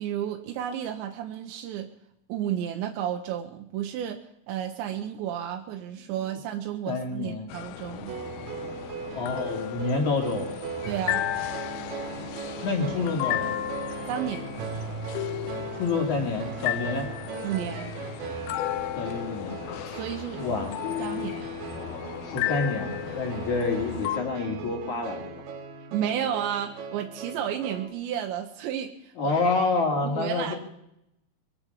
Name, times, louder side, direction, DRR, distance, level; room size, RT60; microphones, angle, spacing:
voice 1, 0.0-1.9 2.3-4.2 4.5-8.1 10.9-11.2 14.0-14.4 17.4-17.9 19.8-20.4 21.0-21.5 25.9-29.4 30.0-30.5, right 10 dB, 85° right, 4 dB, 3.2 m, -32 dB
voice 2, 6.9-7.5 9.0-10.5 12.6-13.6 15.7-17.1 19.0-19.6 20.3-20.7 22.2-25.3 29.2-30.5, left 3 dB, 50° left, 2 dB, 3.3 m, -28 dB
sound 1, 7.5-24.2, left 14 dB, 90° left, 3.1 m, -34 dB
sound 2, 8.1-27.9, right 6 dB, 65° right, 2.4 m, -38 dB
22.5 x 8.9 x 7.3 m, 0.81 s
omnidirectional pair, 5.1 m